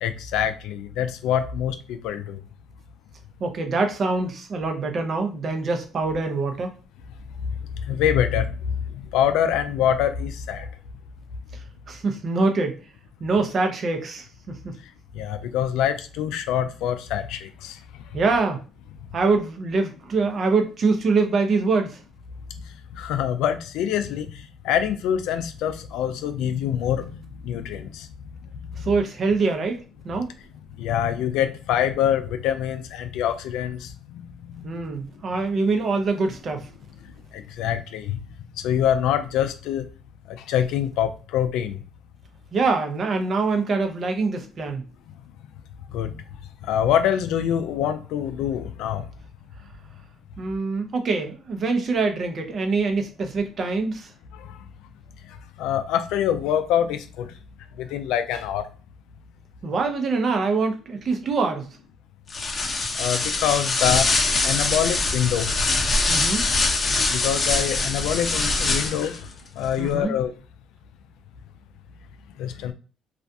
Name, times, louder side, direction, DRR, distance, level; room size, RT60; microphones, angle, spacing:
voice 1, 0.0-2.4 7.8-8.6 9.1-10.7 15.2-17.8 23.0-24.3 24.6-27.2 27.4-28.1 30.8-33.9 37.3-38.2 38.6-39.9 40.3-41.8 45.9-46.2 46.7-49.0 54.3-54.5 55.6-57.3 57.8-58.7 63.0-64.1 64.4-65.5 67.1-69.3 69.6-70.3 72.4-72.7, left 9 dB, 85° left, 9 dB, 0.3 m, -25 dB
voice 2, 3.4-6.7 11.9-12.8 13.2-14.7 18.1-18.6 19.1-22.0 28.8-29.8 30.0-30.3 34.6-36.7 42.5-44.8 50.4-54.1 59.6-61.7 66.1-66.4 69.8-70.1, right 3 dB, 50° right, 4 dB, 0.6 m, -24 dB
sound 1, 62.3-69.2, left 3 dB, 35° left, 0.7 m, -23 dB
2.4 x 2.2 x 2.6 m, 0.35 s
cardioid pair, 85°, 0 cm